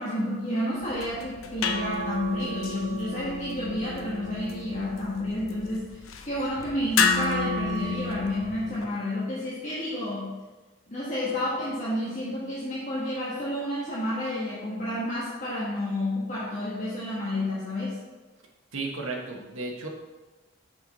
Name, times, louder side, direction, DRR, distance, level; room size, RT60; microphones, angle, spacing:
voice 1, 0.0-10.3 10.9-18.0, left 1 dB, 35° left, -8 dB, 1.3 m, -30 dB
sound 1, 0.8-8.8, left 4 dB, 90° left, 0.6 m, -31 dB
voice 2, 18.7-19.9, right 3 dB, 85° right, 0 dB, 1.2 m, -34 dB
5.9 x 5.4 x 4.0 m, 1.2 s
head